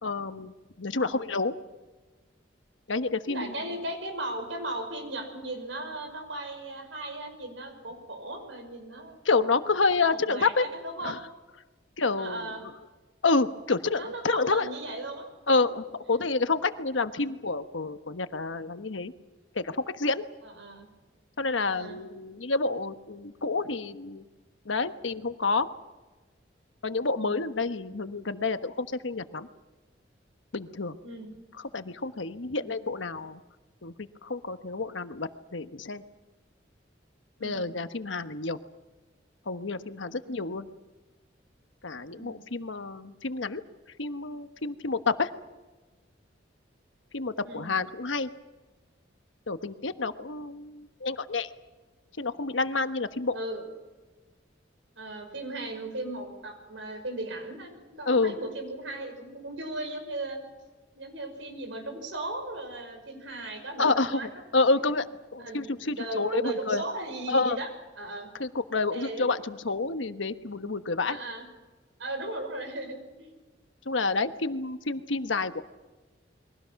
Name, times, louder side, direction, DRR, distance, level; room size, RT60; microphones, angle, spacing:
voice 1, 0.0-0.5 0.8-1.5 2.9-3.5 9.2-10.7 11.0-11.2 12.0-12.7 13.2-14.7 15.5-19.1 19.5-20.3 21.4-24.2 24.6-25.7 26.8-29.5 30.5-30.9 31.7-33.4 33.8-36.0 37.4-38.6 39.5-40.7 41.8-43.6 44.0-45.3 47.1-48.3 49.5-51.5 52.2-53.4 58.1-58.4 63.8-64.2 64.5-65.1 65.3-66.8 67.3-67.6 68.4-71.2 73.9-75.6, left 3 dB, 90° left, 10 dB, 1.2 m, -28 dB
voice 2, 3.2-9.2 10.0-11.2 12.2-12.6 13.9-15.2 15.5-15.6 17.1-17.3 20.4-20.9 21.7-22.0 27.1-27.4 31.0-31.4 32.5-32.8 37.4-37.7 40.2-40.3 42.2-42.4 47.3-47.7 53.3-53.7 55.0-60.4 60.9-64.3 64.7-64.9 65.4-67.7 68.0-68.3 68.9-69.3 71.1-71.5 72.0-73.3, right 2 dB, 90° right, 6 dB, 5.8 m, -37 dB
29.5 x 22.5 x 5.9 m, 1.2 s
head